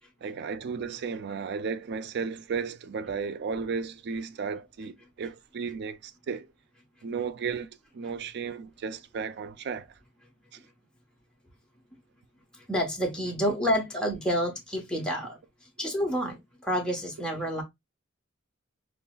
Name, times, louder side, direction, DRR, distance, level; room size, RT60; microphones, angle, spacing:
voice 1, 0.2-6.5 7.0-7.7 7.9-10.0 10.5-10.6, right 5 dB, 55° right, 0.4 m, -34 dB
voice 2, 12.5-15.4 15.8-17.6, equal, 5° left, 1.0 m, -29 dB
5.4 x 2.0 x 2.2 m
head